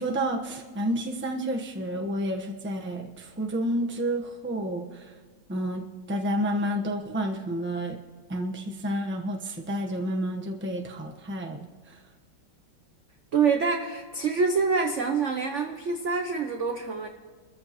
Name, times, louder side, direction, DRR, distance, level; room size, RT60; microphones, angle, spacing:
voice 1, 0.0-5.1 5.5-8.0 8.3-12.0, equal, 10° right, 2 dB, 0.7 m, -30 dB
voice 2, 13.3-17.1, right 5 dB, 55° right, 5 dB, 0.8 m, -26 dB
27.5 x 14.0 x 3.1 m, 1.5 s
omnidirectional pair, 2.3 m